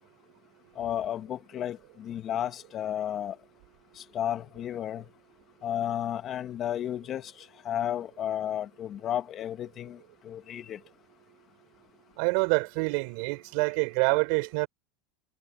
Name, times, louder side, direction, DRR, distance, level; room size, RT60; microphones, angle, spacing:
voice 1, 0.8-3.4 4.0-5.1 5.6-10.8, left 10 dB, 40° left, 1.9 m, -33 dB
voice 2, 12.2-14.7, right 35 dB, 65° right, 5.4 m, -26 dB
supercardioid pair, 120°, 0 cm